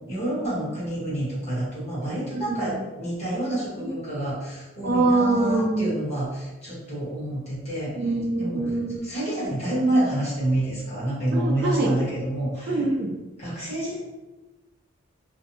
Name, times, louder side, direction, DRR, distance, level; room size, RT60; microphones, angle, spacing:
voice 1, 0.1-7.9 8.4-8.6 9.0-12.7 13.4-14.0, right 1 dB, 35° left, -8 dB, 1.2 m, -28 dB
voice 2, 2.3-2.8 3.8-3.9 4.8-5.9 8.0-9.0 11.3-11.9 12.7-13.1, right 2 dB, 50° right, 0 dB, 0.4 m, -24 dB
2.5 x 2.1 x 2.7 m, 1.1 s
head